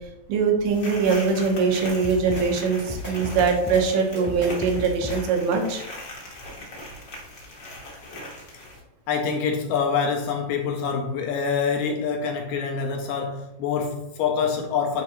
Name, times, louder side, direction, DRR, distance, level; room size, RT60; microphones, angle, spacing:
voice 1, 0.3-5.8, right 5 dB, 80° right, 3.0 m, -22 dB
sound 1, 0.7-8.8, left 1 dB, 60° left, 1.0 m, -40 dB
sound 2, 2.0-2.4 2.8-3.8 4.2-5.2, left 1 dB, 25° right, 0.5 m, -33 dB
voice 2, 9.1-15.0, left 6 dB, 80° left, 2.0 m, -26 dB
11.0 x 3.8 x 3.0 m
omnidirectional pair, 4.4 m